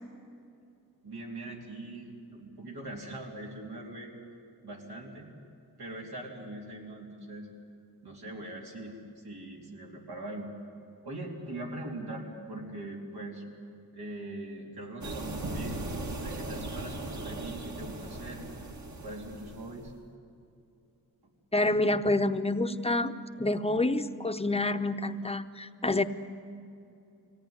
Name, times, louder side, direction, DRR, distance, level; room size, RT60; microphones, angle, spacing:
voice 1, 1.0-4.1 4.6-5.3 5.8-7.5 8.0-10.5 11.0-13.4 13.9-18.5 19.0-19.9, right 1 dB, 85° right, -2 dB, 3.8 m, -41 dB
sound 1, 15.0-19.9, right 2 dB, 50° right, 1.5 m, -38 dB
voice 2, 21.5-26.0, left 2 dB, 15° left, 8 dB, 0.8 m, -28 dB
24.0 x 17.0 x 9.9 m, 2.6 s
wide cardioid pair, 90°, 37 cm